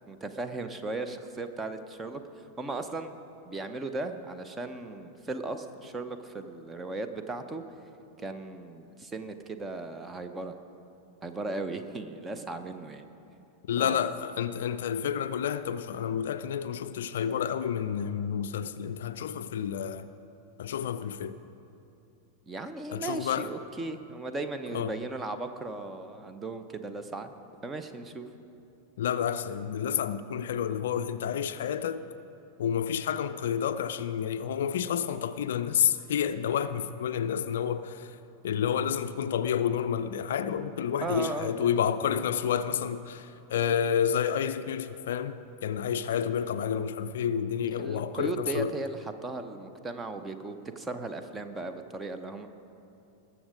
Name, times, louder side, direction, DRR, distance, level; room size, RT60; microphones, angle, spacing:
voice 1, 0.1-3.1 3.5-7.6 8.2-10.5 11.2-13.1 13.8-14.0 22.5-27.3 27.6-28.3 41.0-41.5 47.7-52.5, right 3 dB, 15° right, 0.8 m, -36 dB
voice 2, 13.7-20.1 20.6-21.4 22.9-23.5 24.7-25.0 29.0-32.1 32.6-38.2 38.4-48.7, left 8 dB, 60° left, 0.4 m, -30 dB
20.0 x 7.2 x 5.0 m
figure-of-eight pair, 90°, 0 cm